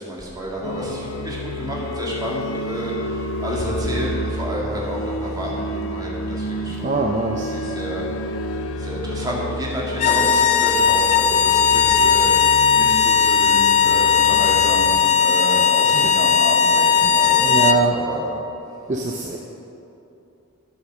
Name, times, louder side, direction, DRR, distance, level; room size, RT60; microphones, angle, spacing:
voice 1, 0.0-8.0 8.8-18.3, equal, 20° right, -4 dB, 1.9 m, -30 dB
sound 1, 0.6-15.0, left 1 dB, 85° left, 0.6 m, -30 dB
voice 2, 6.8-7.5 15.9-16.1 17.0-17.1 17.4-18.0 18.9-19.4, right 3 dB, 35° right, 1 dB, 0.6 m, -23 dB
sound 2, 9.9-17.8, left 6 dB, 35° left, 0.4 m, -17 dB
9.5 x 8.1 x 6.3 m, 2.7 s
head